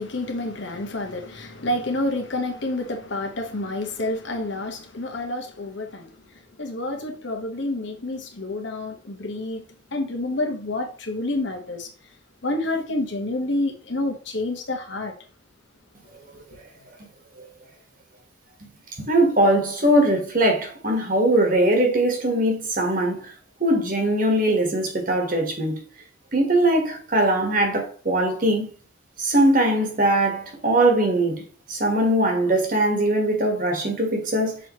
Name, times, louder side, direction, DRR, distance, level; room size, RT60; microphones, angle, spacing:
voice 1, 0.0-9.6 9.9-11.9 12.4-15.1, left 2 dB, 65° left, 1.3 m, -29 dB
voice 2, 19.0-23.3 23.6-25.8 26.3-28.7 29.2-34.6, right 1 dB, 45° right, 1.5 m, -21 dB
6.6 x 4.6 x 3.1 m
head